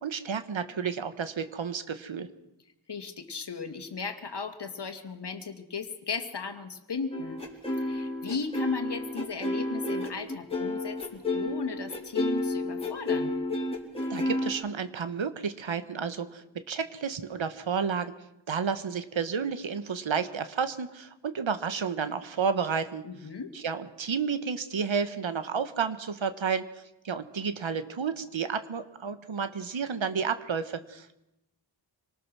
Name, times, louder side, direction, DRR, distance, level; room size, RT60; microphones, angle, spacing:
voice 1, 0.0-2.3 14.1-18.1 18.5-23.0 23.5-26.6 27.0-31.2, right 6 dB, 75° right, 11 dB, 1.5 m, -31 dB
voice 2, 2.9-7.4 7.8-13.4 23.0-23.5, left 5 dB, 60° left, 7 dB, 2.2 m, -36 dB
sound 1, 7.1-14.5, left 2 dB, 10° left, 4.6 m, -31 dB
26.0 x 19.0 x 6.3 m, 0.89 s
wide cardioid pair, 85°, 46 cm